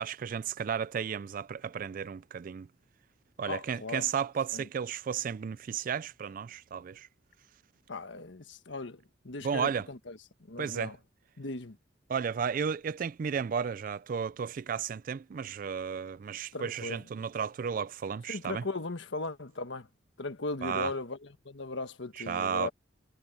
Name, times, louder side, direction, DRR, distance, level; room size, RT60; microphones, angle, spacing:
voice 1, 0.0-2.7 3.4-7.1 9.4-9.9 10.6-10.9 12.1-18.6 20.6-20.9 22.3-22.7, right 7 dB, 45° right, 0.3 m, -33 dB
voice 2, 3.5-4.0 4.5-4.7 7.9-10.2 10.5-11.0 11.4-11.8 16.5-17.0 18.3-19.9 20.2-22.7, left 3 dB, 70° left, 1.4 m, -38 dB
head